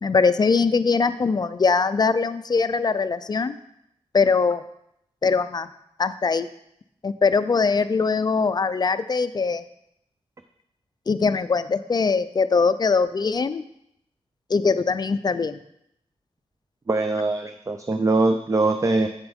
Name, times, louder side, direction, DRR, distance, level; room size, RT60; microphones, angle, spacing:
voice 1, 0.0-3.5 4.1-4.6 5.2-5.7 6.0-6.5 7.0-9.6 11.1-13.6 14.5-15.6, left 4 dB, 40° left, 13 dB, 0.4 m, -21 dB
voice 2, 16.9-19.1, right 2 dB, 30° right, 7 dB, 0.4 m, -22 dB
8.2 x 6.8 x 3.5 m, 0.77 s
wide cardioid pair, 90°, 11 cm